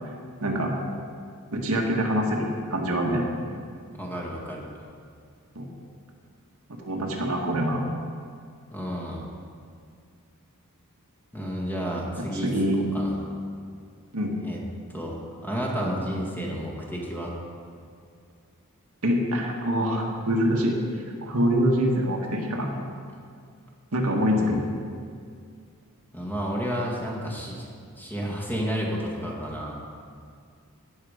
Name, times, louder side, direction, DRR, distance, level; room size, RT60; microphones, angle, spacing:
voice 1, 0.4-0.7 1.5-3.3 5.5-5.7 6.8-7.8 12.4-12.8 14.1-14.3 19.0-20.8 21.2-22.7 23.9-24.7, equal, 75° right, 0 dB, 1.7 m, -25 dB
voice 2, 3.9-4.7 8.7-9.3 11.3-12.5 12.9-13.2 14.4-14.6 14.9-17.3 24.3-24.7 26.1-27.7 28.0-29.8, equal, 10° left, -3 dB, 2.0 m, -31 dB
17.5 x 7.1 x 5.1 m, 2.2 s
head